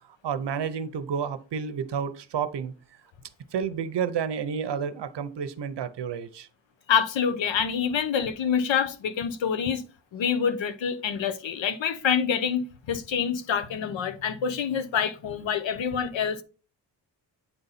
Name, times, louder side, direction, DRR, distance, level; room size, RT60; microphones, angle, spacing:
voice 1, 0.2-2.7 3.5-6.5, right 7 dB, 65° right, 0.8 m, -30 dB
voice 2, 6.9-9.8 10.1-16.4, left 7 dB, 80° left, 0.9 m, -26 dB
8.5 x 4.0 x 4.1 m
wide cardioid pair, 175°, 45 cm